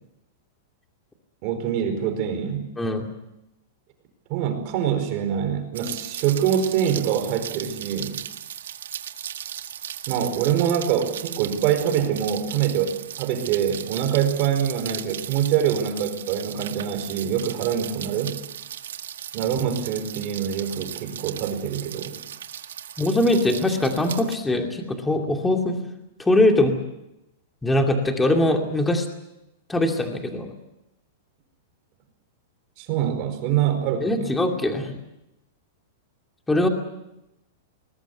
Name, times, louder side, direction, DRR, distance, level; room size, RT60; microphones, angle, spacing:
voice 1, 1.4-2.7 4.3-8.2 10.1-18.4 19.3-22.2 32.8-34.3, right 9 dB, 40° right, 6 dB, 4.8 m, -25 dB
Rain, 5.7-24.4, right 10 dB, 90° right, 1.7 m, -37 dB
voice 2, 23.0-25.8 26.2-26.8 27.6-29.1 29.7-30.5 34.0-35.0 36.5-36.7, left 1 dB, 5° left, 3 dB, 2.5 m, -22 dB
21.0 x 21.0 x 8.3 m, 0.89 s
supercardioid pair, 155°, 0 cm